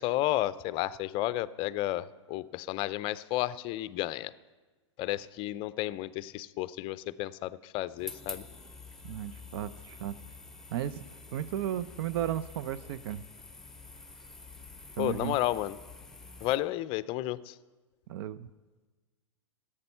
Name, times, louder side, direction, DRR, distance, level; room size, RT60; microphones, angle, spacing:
voice 1, 0.0-4.3 5.0-8.4 15.0-15.8 16.4-17.6, left 15 dB, 35° left, 17 dB, 0.5 m, -32 dB
sound 1, 8.0-16.6, left 3 dB, 5° left, 1.1 m, -47 dB
voice 2, 9.0-10.1 10.7-11.0 11.3-13.2 15.0-15.4 18.1-18.5, right 11 dB, 55° right, 14 dB, 0.5 m, -34 dB
16.0 x 8.7 x 5.6 m, 1.3 s
hypercardioid pair, 110°, 15 cm